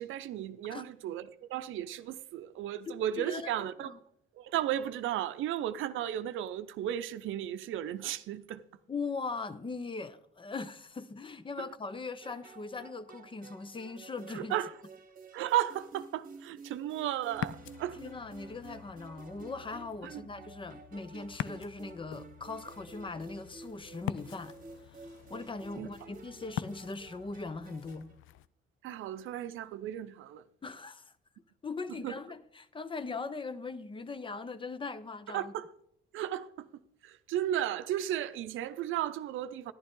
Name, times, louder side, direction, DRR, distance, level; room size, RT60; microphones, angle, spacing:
voice 1, 0.0-3.9 4.4-8.6 11.6-11.7 14.3-14.7 15.3-18.0 20.0-20.3 25.8-25.9 28.8-30.4 32.0-32.2 35.3-35.7 36.1-36.7 37.0-39.7, right 11 dB, 80° right, 0.6 m, -34 dB
voice 2, 3.2-4.0 8.9-14.5 17.9-24.6 24.9-28.1 30.6-31.1 31.6-35.5, left 4 dB, 25° left, 0.7 m, -40 dB
sound 1, 12.2-28.2, right 4 dB, 45° right, 1.1 m, -52 dB
Ocean, 17.3-28.5, left 12 dB, 80° left, 0.4 m, -44 dB
11.0 x 11.0 x 3.7 m
cardioid pair, 90°, 20 cm